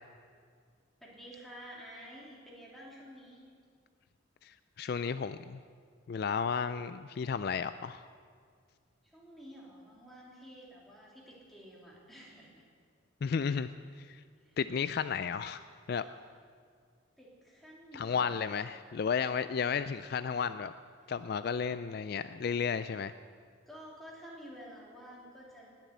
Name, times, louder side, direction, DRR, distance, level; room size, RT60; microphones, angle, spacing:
voice 1, 1.0-3.5 9.0-12.6 14.4-14.6 15.9-16.3 17.2-18.7 23.6-25.7, equal, ahead, -5 dB, 3.2 m, -51 dB
voice 2, 4.4-5.6 6.1-8.1 13.2-13.7 14.0-14.2 14.6-15.6 15.9-16.1 17.9-20.7 21.1-23.1, left 6 dB, 50° left, 12 dB, 0.3 m, -33 dB
20.0 x 7.4 x 8.2 m, 2.1 s
head